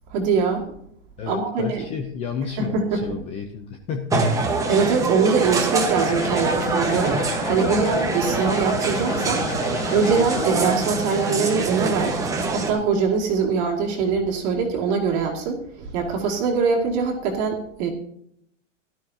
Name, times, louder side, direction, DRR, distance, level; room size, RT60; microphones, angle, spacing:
voice 1, 0.1-0.6 1.3-1.8 2.6-3.0 4.7-7.2 7.5-9.5 9.9-12.2 12.5-17.9, right 5 dB, 35° right, 0 dB, 2.3 m, -23 dB
voice 2, 1.2-4.5, left 6 dB, 15° left, 5 dB, 0.6 m, -31 dB
sound 1, 4.1-12.7, right 3 dB, 10° right, 1.2 m, -24 dB
sound 2, 6.1-10.5, left 11 dB, 75° left, 0.8 m, -33 dB
17.0 x 12.0 x 2.8 m, 0.72 s
supercardioid pair, 160°, 38 cm